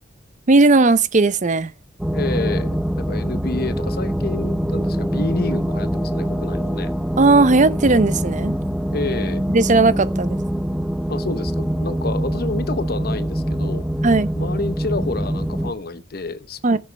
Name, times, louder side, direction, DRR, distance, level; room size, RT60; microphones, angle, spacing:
voice 1, 0.5-1.7 7.2-8.5 9.5-10.4 14.0-14.3 16.6-16.8, right 3 dB, 40° right, 0.7 m, -16 dB
sound 1, 2.0-15.7, equal, 5° right, 0.7 m, -24 dB
voice 2, 2.1-6.9 8.9-9.5 11.1-13.9 14.3-16.8, left 3 dB, 55° left, 0.9 m, -29 dB
17.0 x 7.7 x 3.3 m
head